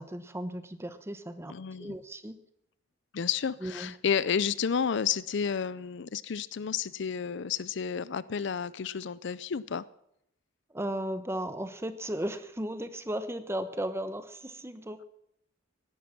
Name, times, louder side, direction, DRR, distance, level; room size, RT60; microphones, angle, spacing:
voice 1, 0.0-1.5 1.8-2.4 3.6-3.9 10.7-15.0, right 1 dB, 15° right, 11 dB, 1.0 m, -35 dB
voice 2, 1.5-1.9 3.1-9.8, left 7 dB, 60° left, 19 dB, 0.5 m, -31 dB
17.5 x 11.5 x 5.9 m, 0.77 s
head